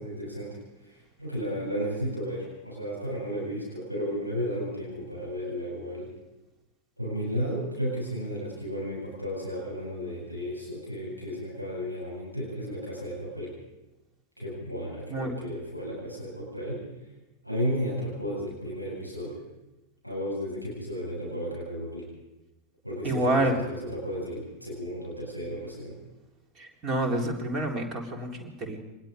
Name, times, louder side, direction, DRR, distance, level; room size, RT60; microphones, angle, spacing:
voice 1, 0.0-6.1 7.0-13.5 14.4-16.8 17.4-19.4 20.0-22.1 22.8-26.0, equal, 90° right, -4 dB, 7.7 m, -33 dB
voice 2, 23.0-23.6 26.6-28.8, right 1 dB, 30° right, 3 dB, 3.9 m, -28 dB
25.0 x 20.0 x 5.3 m, 1.0 s
figure-of-eight pair, 90°, 0 cm